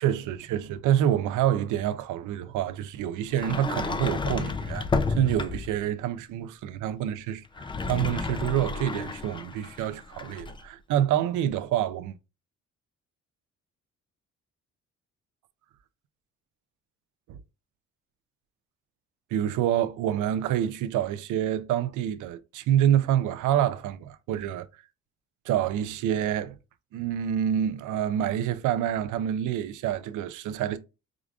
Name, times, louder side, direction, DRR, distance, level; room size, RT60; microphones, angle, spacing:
voice 1, 0.0-12.2 17.3-17.4 19.3-24.7 25.5-26.6 26.9-30.8, right 10 dB, 85° right, 0.5 m, -27 dB
Sliding door, 3.3-5.8 7.4-10.6, left 4 dB, 15° left, 0.3 m, -31 dB
4.8 x 2.5 x 2.3 m
cardioid pair, 90°, 30 cm